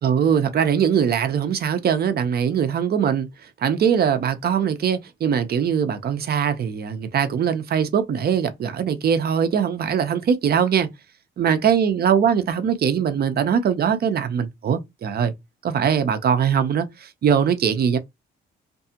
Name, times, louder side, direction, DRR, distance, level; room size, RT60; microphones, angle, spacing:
voice 1, 0.0-3.3 3.6-10.9 11.4-15.3 15.6-18.0, right 8 dB, 50° right, 0.7 m, -21 dB
2.6 x 2.4 x 2.7 m
cardioid pair, 90°, 20 cm